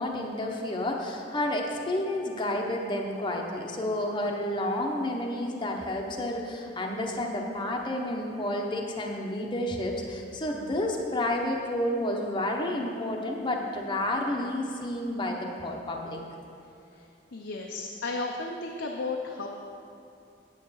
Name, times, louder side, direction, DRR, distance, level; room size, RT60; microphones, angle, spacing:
voice 1, 0.0-16.2, left 1 dB, 25° left, 0 dB, 0.9 m, -30 dB
voice 2, 16.9-19.5, left 3 dB, 80° left, 0 dB, 0.7 m, -34 dB
9.0 x 8.2 x 5.6 m, 2.6 s
head